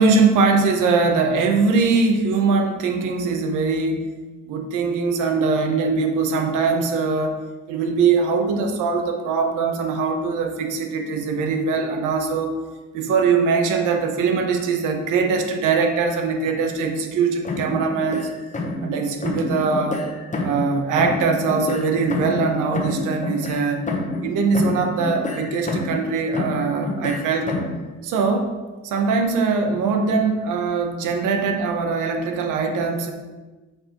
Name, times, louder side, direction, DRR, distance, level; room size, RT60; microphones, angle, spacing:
voice 1, 0.0-4.1 4.5-7.4 7.7-12.5 12.9-18.3 18.8-20.0 20.4-23.8 24.2-27.5 28.0-28.6 28.8-33.1, right 4 dB, 90° right, 5 dB, 0.9 m, -21 dB
sound 1, 17.4-18.9 19.2-20.7 21.0-24.3 24.5-26.1 26.3-27.8, left 2 dB, 25° left, 1.0 m, -28 dB
8.6 x 4.6 x 3.0 m, 1.2 s
cardioid pair, 90°, 30 cm